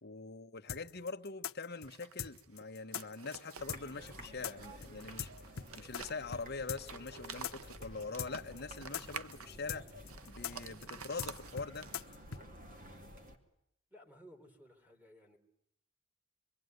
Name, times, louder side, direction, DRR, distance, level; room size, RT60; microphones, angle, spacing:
voice 1, 0.0-5.3 5.8-9.9 10.2-11.9, left 4 dB, 50° left, 1.2 m, -43 dB
sound 1, 0.7-6.0 6.3-6.4 6.7-12.4, left 8 dB, 75° left, 1.0 m, -41 dB
sound 2, 1.7-12.2, right 6 dB, 80° right, 1.0 m, -51 dB
sound 3, 3.6-13.4, equal, 40° right, 2.9 m, -53 dB
voice 2, 13.9-15.4, equal, 5° right, 3.5 m, -58 dB
27.0 x 23.0 x 9.4 m
head